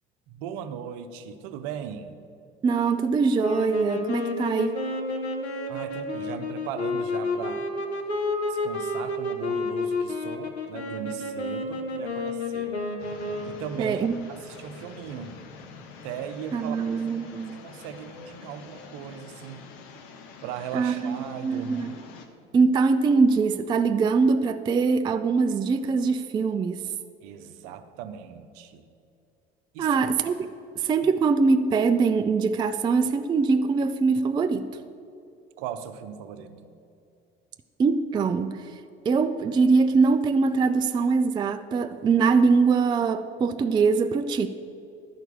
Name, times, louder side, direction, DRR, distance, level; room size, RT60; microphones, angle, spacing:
voice 1, 0.3-2.2 5.7-7.6 8.5-12.8 13.4-15.4 16.0-16.8 17.5-19.7 20.4-22.0 27.2-28.9 29.7-30.0 35.6-36.8, right 8 dB, 60° right, 0.7 m, -38 dB
voice 2, 2.6-4.8 13.8-14.2 16.5-17.6 20.7-21.9 22.5-26.8 29.8-30.4 30.8-34.7 37.8-38.6 39.1-44.5, right 4 dB, 15° right, 0.3 m, -23 dB
sound 1, 3.4-13.7, left 2 dB, 90° left, 0.7 m, -30 dB
sound 2, 13.0-22.3, left 5 dB, 60° left, 1.0 m, -46 dB
11.0 x 4.6 x 7.0 m
figure-of-eight pair, 60°, 31 cm